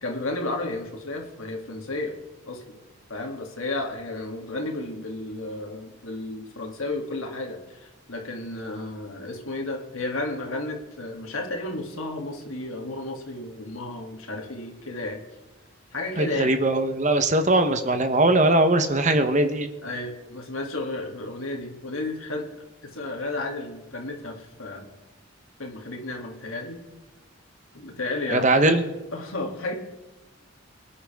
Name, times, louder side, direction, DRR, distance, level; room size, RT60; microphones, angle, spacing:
voice 1, 0.0-2.1 2.5-2.8 3.1-15.2 15.9-16.5 19.8-22.5 22.8-24.9 25.6-26.8 27.7-28.6 29.1-29.7, left 2 dB, 85° left, 1 dB, 2.8 m, -32 dB
voice 2, 16.2-19.7 28.3-28.8, right 2 dB, 35° right, 8 dB, 1.1 m, -20 dB
24.0 x 9.8 x 3.6 m, 1.2 s
head